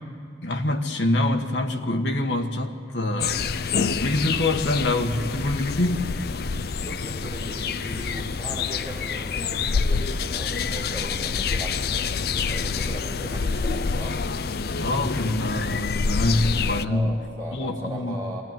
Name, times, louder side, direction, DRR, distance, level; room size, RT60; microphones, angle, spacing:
voice 1, 0.4-3.4 4.0-6.1 14.7-17.1 17.5-18.2, left 2 dB, 85° left, 4 dB, 1.5 m, -25 dB
sound 1, 3.2-16.8, left 5 dB, 60° left, 0.5 m, -27 dB
voice 2, 6.8-14.2 16.8-18.4, right 1 dB, 20° right, -6 dB, 5.4 m, -38 dB
23.5 x 17.0 x 9.3 m, 2.1 s
head